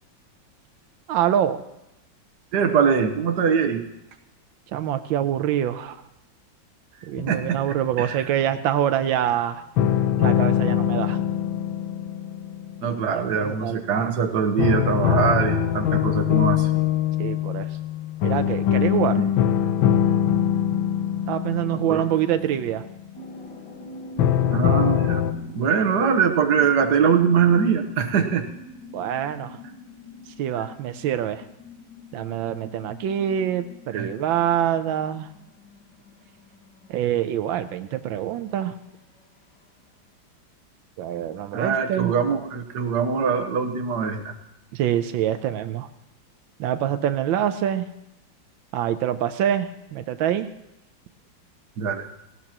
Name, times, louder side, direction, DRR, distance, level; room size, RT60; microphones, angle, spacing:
voice 1, 1.1-1.6 4.7-6.0 7.1-9.6 10.2-11.2 13.1-13.8 17.2-17.7 18.2-19.2 21.3-22.9 28.9-29.6 30.4-31.4 32.1-35.3 36.9-38.8 41.0-42.1 44.7-45.9 46.6-47.8 48.7-50.5, right 10 dB, 90° right, 9 dB, 1.5 m, -25 dB
voice 2, 2.5-3.8 7.3-7.6 8.0-8.3 12.8-16.7 19.2-19.3 21.7-22.0 24.5-25.2 25.5-28.4 33.9-34.1 41.5-44.4 51.8-52.1, right 6 dB, 60° right, 6 dB, 1.6 m, -22 dB
sound 1, 7.2-8.4 9.8-13.8 14.6-23.4 24.2-25.3, left 10 dB, 85° left, 1.6 m, -23 dB
sound 2, 23.1-39.2, left 1 dB, 65° left, 2.2 m, -44 dB
18.5 x 17.0 x 2.9 m, 0.88 s
omnidirectional pair, 2.1 m